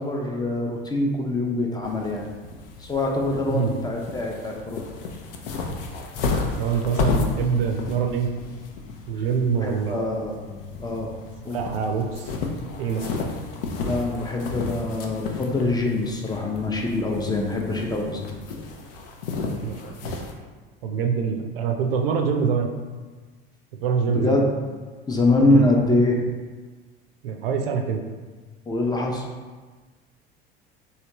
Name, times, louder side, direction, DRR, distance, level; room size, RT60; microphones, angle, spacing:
voice 1, 0.0-2.3 2.8-4.8 9.6-11.1 11.4-11.6 13.8-18.3 24.1-24.4 25.1-26.2 28.7-29.3, left 2 dB, 15° left, 0 dB, 0.5 m, -24 dB
sound 1, 1.8-20.3, left 4 dB, 70° left, 0.5 m, -32 dB
voice 2, 6.6-8.3 9.1-10.2 11.4-12.3 12.8-13.1 19.6-20.2 20.8-22.7 23.8-24.4 25.5-25.7 27.2-28.0, right 6 dB, 75° right, 4 dB, 0.5 m, -25 dB
3.2 x 2.8 x 2.9 m, 1.4 s
hypercardioid pair, 70°, 29 cm